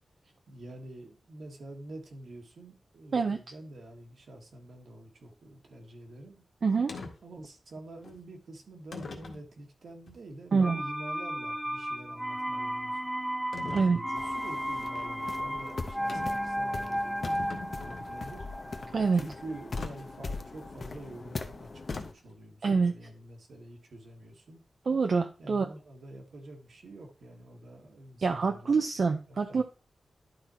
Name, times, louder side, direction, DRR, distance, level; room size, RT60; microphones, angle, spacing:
voice 1, 0.5-6.4 7.2-13.0 13.6-17.2 17.8-18.5 18.9-24.6 25.4-28.8 29.3-29.6, right 1 dB, 75° right, 1 dB, 1.8 m, -47 dB
sound 1, 6.9-7.1 8.0-8.2 8.9-9.4 10.1-10.2 13.5-13.9 16.1-16.4 16.8-16.9 17.1-18.2 19.8-19.9 21.9-22.3, left 3 dB, 80° left, 1.8 m, -41 dB
voice 2, 10.5-10.8 13.7-14.0 18.9-19.2 22.6-22.9 24.9-25.7 28.2-29.6, right 4 dB, 55° right, 4 dB, 0.6 m, -26 dB
sound 2, 10.6-20.3 20.6-20.7, equal, ahead, 0.3 m, -34 dB
sound 3, 14.2-22.1, left 3 dB, 45° left, 0.9 m, -41 dB
11.5 x 4.3 x 4.4 m, 0.35 s
wide cardioid pair, 165°, 0 cm